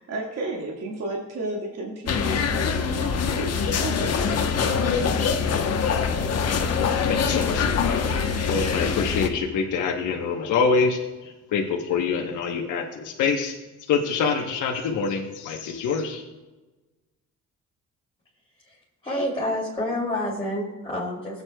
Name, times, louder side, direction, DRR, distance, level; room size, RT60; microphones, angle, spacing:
voice 1, 0.0-4.0, right 2 dB, 55° right, -2 dB, 1.9 m, -33 dB
sound 1, 2.1-9.3, left 6 dB, 55° left, 1.0 m, -24 dB
voice 2, 7.1-8.2 8.5-13.5 13.9-16.2, left 5 dB, 80° left, 1 dB, 1.1 m, -25 dB
voice 3, 18.6-21.4, left 1 dB, 20° left, -7 dB, 3.0 m, -29 dB
17.0 x 8.2 x 2.3 m, 1.1 s
cardioid pair, 90°, 30 cm